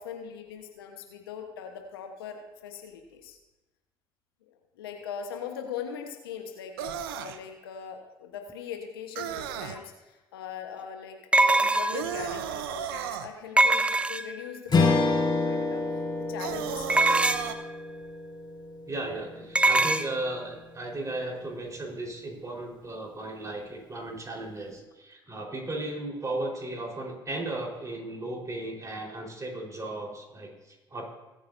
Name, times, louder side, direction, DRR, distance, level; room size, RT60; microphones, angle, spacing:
voice 1, 0.0-3.4 4.8-13.8 14.1-16.0 16.3-17.5, left 7 dB, 85° left, 4 dB, 1.2 m, -40 dB
sound 1, 6.8-7.4 9.2-9.8 11.9-13.3 16.4-17.6, right 9 dB, 85° right, 0.7 m, -34 dB
sound 2, 9.8-9.9 11.3-12.2 13.6-14.5 16.9-17.6 19.6-20.1, right 2 dB, 10° right, 0.6 m, -22 dB
Strum, 14.7-19.3, left 3 dB, 40° left, 3.8 m, -28 dB
voice 2, 18.9-31.1, right 2 dB, 25° right, -1 dB, 4.4 m, -35 dB
21.0 x 8.7 x 2.7 m, 1.1 s
hypercardioid pair, 55°, 12 cm